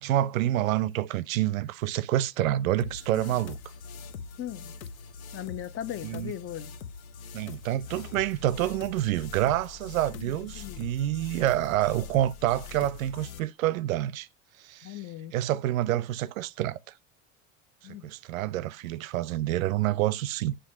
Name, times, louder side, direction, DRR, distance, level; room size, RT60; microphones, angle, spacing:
voice 1, 0.0-3.6 6.0-6.3 7.3-14.3 14.6-15.0 15.3-16.8 18.0-20.6, right 14 dB, 75° right, 0.5 m, -27 dB
sound 1, 2.8-13.4, left 6 dB, 80° left, 0.8 m, -43 dB
Sigh, 2.9-3.6, left 12 dB, 65° left, 1.8 m, -47 dB
voice 2, 4.4-4.7 5.3-6.7 10.1-10.9 14.8-15.3 17.8-18.1, left 12 dB, 30° left, 0.7 m, -38 dB
7.6 x 3.3 x 5.3 m
hypercardioid pair, 80°, 41 cm